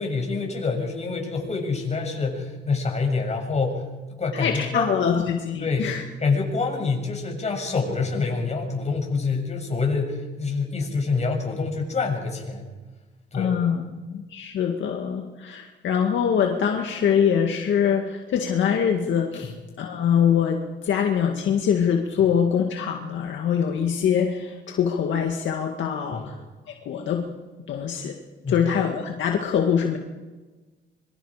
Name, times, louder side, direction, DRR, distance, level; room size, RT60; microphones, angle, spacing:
voice 1, 0.0-3.8 4.2-4.9 5.6-5.9 6.2-12.6 13.3-13.5 26.1-26.3 28.4-28.7, left 4 dB, 35° left, 1 dB, 7.3 m, -26 dB
voice 2, 4.3-6.0 13.3-26.4 26.7-27.2 27.7-28.2 28.5-30.0, left 7 dB, 70° left, 2 dB, 2.1 m, -24 dB
25.5 x 24.5 x 5.1 m, 1.3 s
cardioid pair, 90°, 20 cm